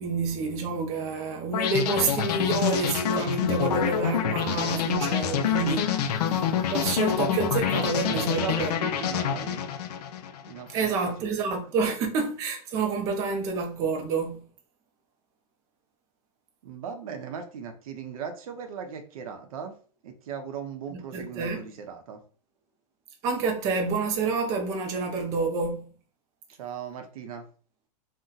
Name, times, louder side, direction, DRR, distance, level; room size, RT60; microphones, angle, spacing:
voice 1, 0.0-8.9 10.7-14.4 20.9-21.6 23.2-25.9, right 4 dB, 15° right, 0.3 m, -28 dB
sound 1, 1.5-10.6, left 8 dB, 75° left, 0.5 m, -27 dB
voice 2, 8.1-9.6 10.5-11.4 16.6-19.8 20.0-22.2 26.6-27.5, right 7 dB, 60° right, 0.6 m, -38 dB
2.7 x 2.1 x 3.7 m
supercardioid pair, 165°, 21 cm